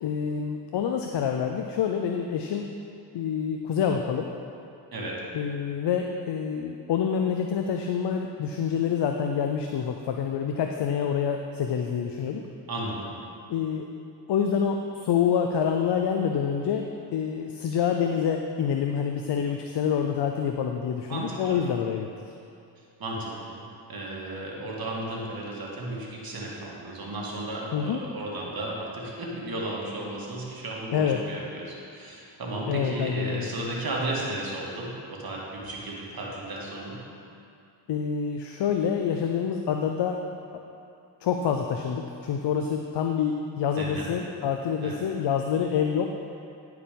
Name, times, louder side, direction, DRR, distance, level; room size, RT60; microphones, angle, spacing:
voice 1, 0.0-2.7 3.1-4.3 5.3-12.4 13.5-13.9 14.3-22.1 27.7-28.0 30.9-31.2 32.7-33.5 37.9-40.2 41.2-46.1, left 7 dB, 60° left, 3 dB, 0.7 m, -27 dB
voice 2, 12.7-13.1 21.1-21.6 23.0-23.6 23.9-37.0 43.8-44.1 44.8-45.0, right 1 dB, 50° right, -4 dB, 2.1 m, -34 dB
10.0 x 4.8 x 5.2 m, 2.5 s
cardioid pair, 60°, 46 cm